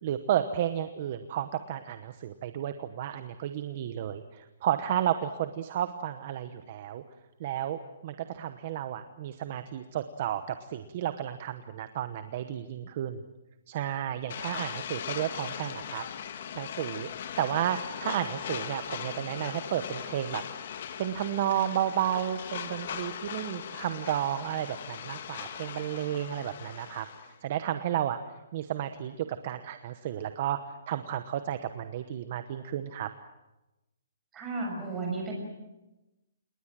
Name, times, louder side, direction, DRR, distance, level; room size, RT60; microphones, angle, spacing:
voice 1, 0.0-7.0 7.4-13.2 13.7-16.0 16.5-20.4 21.0-33.1, right 11 dB, 35° right, 10 dB, 1.0 m, -32 dB
sound 1, 14.3-27.3, left 8 dB, 45° left, 1.6 m, -39 dB
voice 2, 34.3-35.3, right 3 dB, 10° right, -1 dB, 6.5 m, -33 dB
28.5 x 20.0 x 7.6 m, 1.0 s
hypercardioid pair, 175°, 0 cm